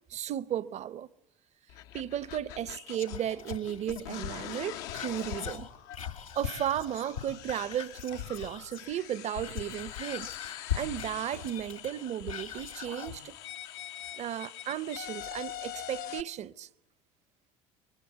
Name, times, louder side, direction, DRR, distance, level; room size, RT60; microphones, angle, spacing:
voice 1, 0.1-1.1 1.9-5.7 6.4-10.3 10.7-13.3 14.2-16.7, right 10 dB, 40° right, 0.8 m, -34 dB
sound 1, 1.7-16.2, left 12 dB, 60° left, 0.9 m, -44 dB
Whispering, 2.9-8.9 9.2-13.2 13.6-13.7, left 8 dB, 90° left, 2.1 m, -40 dB
26.0 x 22.5 x 8.1 m
figure-of-eight pair, 65°, 17 cm